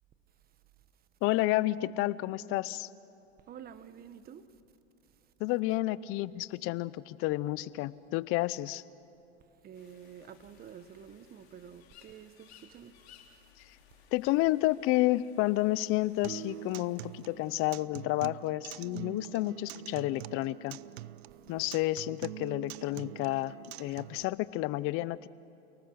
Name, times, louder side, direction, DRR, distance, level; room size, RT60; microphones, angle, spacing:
voice 1, 1.2-2.9 5.4-8.8 14.1-20.8 21.5-25.3, left 17 dB, 45° left, 0.7 m, -30 dB
voice 2, 3.5-4.5 9.6-12.9, right 8 dB, 30° right, 1.2 m, -49 dB
sound 1, 9.7-17.7, left 8 dB, 80° left, 3.7 m, -61 dB
Acoustic guitar, 16.2-24.2, right 15 dB, 75° right, 0.6 m, -45 dB
29.5 x 19.0 x 6.4 m
supercardioid pair, 120°, 32 cm